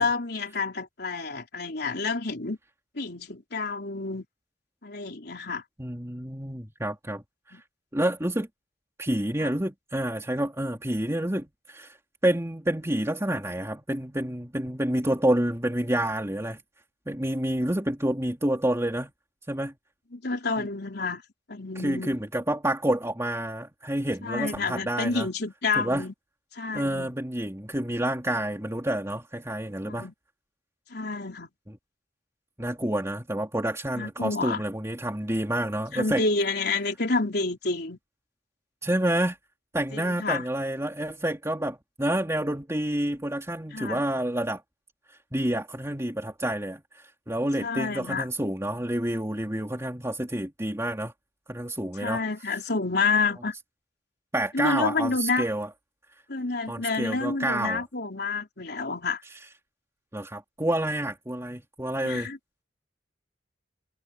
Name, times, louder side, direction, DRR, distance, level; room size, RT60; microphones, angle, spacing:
voice 1, 0.0-2.6 2.9-4.2 4.8-5.6 7.5-7.6 9.4-9.5 20.1-21.2 21.5-22.2 24.2-26.1 26.5-27.1 29.8-30.1 30.9-31.5 33.9-34.6 35.9-38.0 39.9-40.4 43.7-44.0 47.6-48.3 52.0-53.5 54.5-55.5 56.3-59.2 62.0-62.4, left 3 dB, 60° left, 4.1 m, -29 dB
voice 2, 5.8-7.6 7.9-8.5 9.0-12.0 12.2-16.6 17.1-19.1 19.5-19.8 20.6-20.7 21.8-25.3 25.8-26.0 26.7-30.1 32.6-36.2 38.8-39.4 39.7-44.6 45.3-51.1 51.5-52.2 54.3-55.7 56.7-57.8 59.3-59.4 60.1-62.3, right 1 dB, 15° right, 3.1 m, -28 dB
head